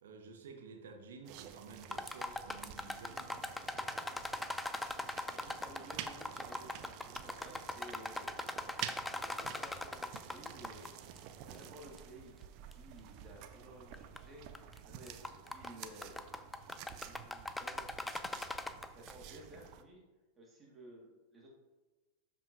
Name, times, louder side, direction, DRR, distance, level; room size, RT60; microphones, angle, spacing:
voice 1, 0.0-3.4, right 4 dB, 60° right, 5 dB, 1.1 m, -52 dB
sound 1, 1.2-19.8, right 10 dB, 40° right, 0.5 m, -50 dB
sound 2, 1.8-10.9 11.2-11.3 12.0-12.1 12.7-12.8 13.9-14.2 14.5-14.8 15.1-19.1, left 2 dB, 5° left, 0.4 m, -40 dB
voice 2, 3.7-4.0 4.9-8.5 9.0-10.9 11.5-12.4 12.7-14.4 14.8-16.2 16.7-18.5 18.9-20.0 20.4-21.5, right 1 dB, 20° right, -2 dB, 2.1 m, -55 dB
12.0 x 5.3 x 2.8 m, 1.2 s
figure-of-eight pair, 90°, 0 cm